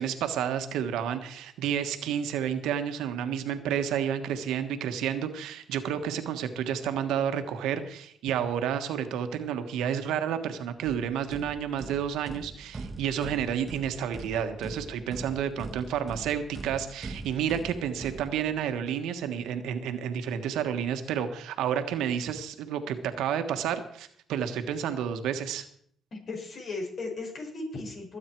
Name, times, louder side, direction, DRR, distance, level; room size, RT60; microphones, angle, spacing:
voice 1, 0.0-25.7, right 8 dB, 90° right, 8 dB, 1.4 m, -30 dB
sound 1, 10.8-18.8, right 3 dB, 30° right, 1.5 m, -42 dB
voice 2, 26.1-28.2, left 3 dB, 50° left, 0 dB, 6.7 m, -36 dB
21.0 x 9.0 x 4.6 m, 0.62 s
cardioid pair, 90°, 0 cm